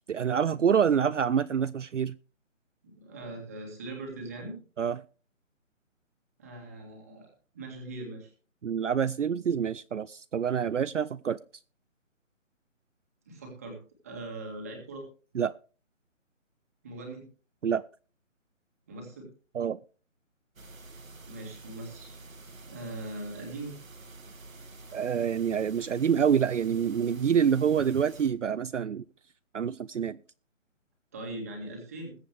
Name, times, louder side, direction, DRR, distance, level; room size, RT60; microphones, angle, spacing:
voice 1, 0.1-2.1 4.8-5.0 8.6-11.4 15.3-15.5 17.6-17.8 19.5-19.8 24.9-29.0 29.5-30.2, right 7 dB, 65° right, 0.5 m, -26 dB
voice 2, 2.8-4.6 6.4-8.3 13.3-15.1 16.8-17.3 18.9-19.3 21.3-22.2 22.7-23.7 31.1-32.2, right 2 dB, 10° right, 2.0 m, -41 dB
sound 1, 20.5-28.3, right 2 dB, 85° right, 2.3 m, -48 dB
21.0 x 8.0 x 3.3 m
hypercardioid pair, 180°, 40 cm